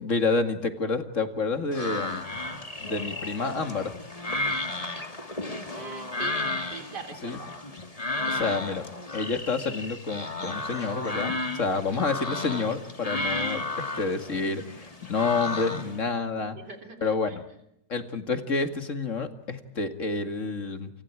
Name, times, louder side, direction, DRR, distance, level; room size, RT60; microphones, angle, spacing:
voice 1, 0.0-2.2 2.8-3.9 7.2-7.4 8.3-8.9 9.1-16.6 17.0-17.4 17.9-20.9, left 4 dB, 45° left, 8 dB, 2.6 m, -29 dB
sound 1, 1.7-16.0, left 2 dB, 20° left, 2.3 m, -33 dB
voice 2, 5.7-6.4 6.7-7.5 16.6-17.3, right 4 dB, 70° right, 5 dB, 3.8 m, -41 dB
29.0 x 28.5 x 4.8 m, 0.76 s
omnidirectional pair, 1.8 m